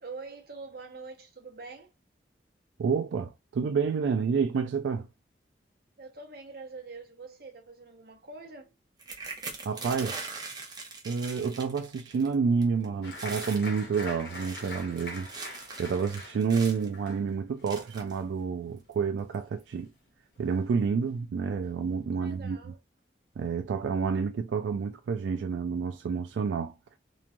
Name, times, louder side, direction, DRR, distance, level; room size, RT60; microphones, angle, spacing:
voice 1, 0.0-1.9 6.0-8.7 22.1-22.8, right 3 dB, 55° right, 0.8 m, -45 dB
voice 2, 2.8-5.1 9.7-10.2 11.1-19.9 20.4-22.6 23.4-27.0, right 5 dB, 90° right, 0.3 m, -29 dB
sound 1, 9.0-12.3 12.6-12.9 13.1-13.7 14.2-16.9 17.7-18.2 18.9-19.0 19.3-19.6, right 4 dB, 20° right, 0.6 m, -41 dB
Applause, 13.0-20.1 20.4-21.1 21.5-21.6 21.9-22.4, left 2 dB, 65° left, 0.9 m, -45 dB
3.0 x 2.3 x 2.5 m
head